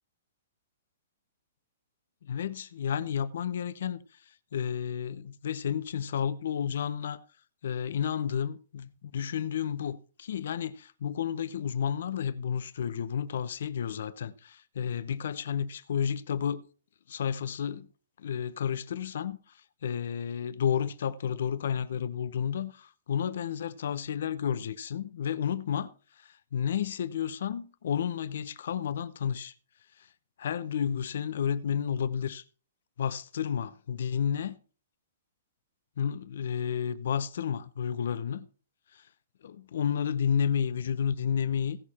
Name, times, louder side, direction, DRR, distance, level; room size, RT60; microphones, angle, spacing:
voice 1, 2.2-4.0 4.5-7.2 7.6-16.6 17.1-17.9 18.2-19.4 19.8-25.9 26.2-29.5 30.0-30.1 30.4-32.4 33.0-34.5 36.0-38.5 38.9-39.0 39.4-41.8, left 8 dB, 65° left, 0.7 m, -31 dB
16.0 x 6.5 x 4.3 m
hypercardioid pair, 170°, 0 cm